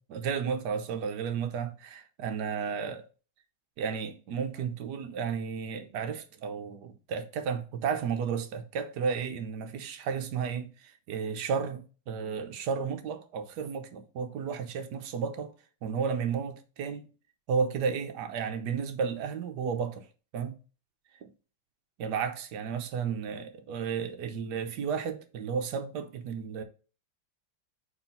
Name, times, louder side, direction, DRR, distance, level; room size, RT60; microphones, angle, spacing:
voice 1, 0.1-3.0 3.8-15.5 15.8-17.1 17.5-20.1 20.3-20.6 22.0-26.6, right 6 dB, 65° right, 1.4 m, -33 dB
4.8 x 4.4 x 5.5 m
omnidirectional pair, 2.0 m